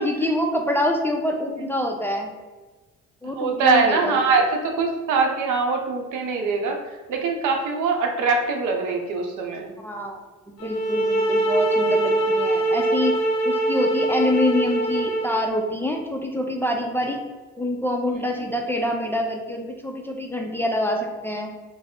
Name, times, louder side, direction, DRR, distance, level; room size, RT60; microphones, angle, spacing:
voice 1, 0.0-2.3 3.2-4.5 9.8-10.2 10.5-13.2 13.4-17.2 17.6-21.5, left 1 dB, 10° left, 2 dB, 0.4 m, -26 dB
voice 2, 3.3-6.8 7.1-9.7, right 4 dB, 80° right, 2 dB, 0.7 m, -22 dB
sound 1, 10.6-15.6, right 2 dB, 60° left, 0.7 m, -23 dB
3.2 x 2.0 x 3.6 m, 1.3 s
cardioid pair, 90°, 30 cm